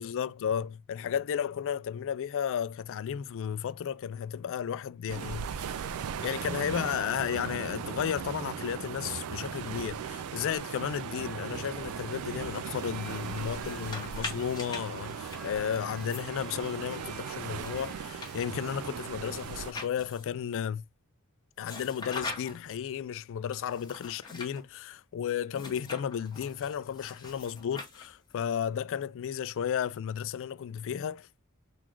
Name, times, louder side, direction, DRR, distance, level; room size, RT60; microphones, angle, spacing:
voice 1, 0.0-5.9 6.2-20.8 21.6-31.3, left 8 dB, 60° left, 0.3 m, -33 dB
sound 1, 5.1-19.7, right 7 dB, 80° right, 0.4 m, -38 dB
sound 2, 10.1-19.7, left 1 dB, ahead, 0.7 m, -53 dB
sound 3, 13.5-17.0 17.5-20.4 21.6-22.8 23.5-24.6 25.5-28.3, left 3 dB, 20° left, 1.3 m, -44 dB
3.9 x 2.4 x 4.5 m
head